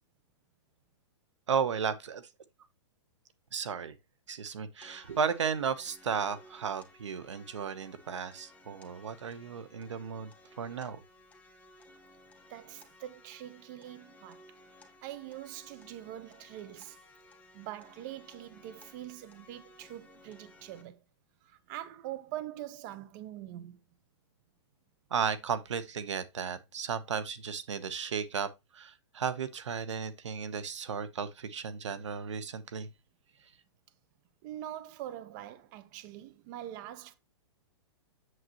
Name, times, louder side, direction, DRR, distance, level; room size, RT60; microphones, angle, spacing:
voice 1, 1.5-2.3 3.5-3.9 4.3-10.3 10.6-11.0 25.1-32.9, right 6 dB, 85° right, 1.1 m, -34 dB
sound 1, 4.8-20.8, left 1 dB, 10° left, 1.3 m, -58 dB
voice 2, 12.5-14.4 15.0-17.0 17.5-21.0 21.4-23.8 34.4-37.1, right 13 dB, 40° right, 0.9 m, -43 dB
7.9 x 7.7 x 3.0 m
hypercardioid pair, 140°, 15 cm